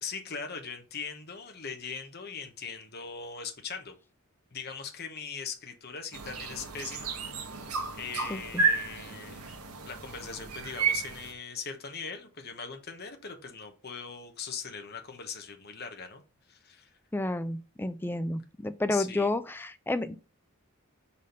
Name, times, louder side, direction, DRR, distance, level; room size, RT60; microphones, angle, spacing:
voice 1, 0.0-3.9 4.5-7.1 7.5-9.6 9.8-16.2 16.5-16.9 18.9-19.3, left 5 dB, 45° left, 1.1 m, -40 dB
sound 1, 6.1-11.3, right 4 dB, 90° right, 1.2 m, -32 dB
voice 2, 8.3-8.6 17.1-20.2, left 2 dB, 10° left, 0.4 m, -31 dB
4.9 x 4.3 x 5.3 m
head